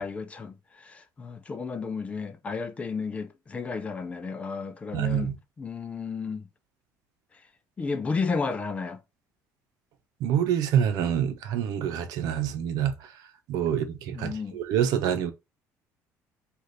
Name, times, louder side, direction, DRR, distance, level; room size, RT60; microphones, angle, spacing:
voice 1, 0.0-6.5 7.8-9.0 14.1-14.6, left 4 dB, 20° left, 0.4 m, -33 dB
voice 2, 4.9-5.3 10.2-12.9 13.5-15.3, right 9 dB, 70° right, 0.8 m, -26 dB
4.9 x 2.5 x 3.9 m
cardioid pair, 160°, 6 cm